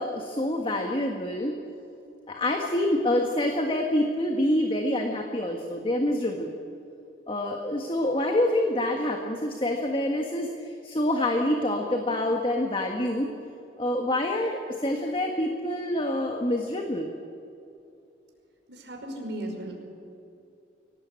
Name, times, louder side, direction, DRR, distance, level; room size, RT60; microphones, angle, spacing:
voice 1, 0.0-1.6 2.3-6.5 7.3-13.3 13.8-17.1, left 1 dB, 30° left, 2 dB, 1.6 m, -26 dB
voice 2, 18.7-19.8, right 1 dB, 75° right, 1 dB, 5.3 m, -36 dB
24.5 x 18.5 x 8.5 m, 2.7 s
head